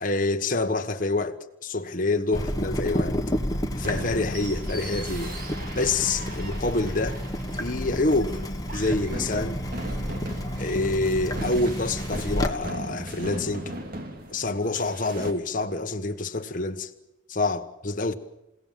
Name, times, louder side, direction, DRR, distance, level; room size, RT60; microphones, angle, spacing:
voice 1, 0.0-3.2 3.7-5.3 5.8-7.2 7.6-8.4 8.7-9.6 10.6-13.7 14.3-16.9 17.3-18.1, left 2 dB, 40° left, 1.3 m, -27 dB
Water tap faucet / Drip, 2.3-12.5, equal, 20° left, 1.7 m, -30 dB
sound 1, 3.8-15.3, right 1 dB, 45° right, 2.8 m, -38 dB
29.0 x 17.5 x 7.5 m
head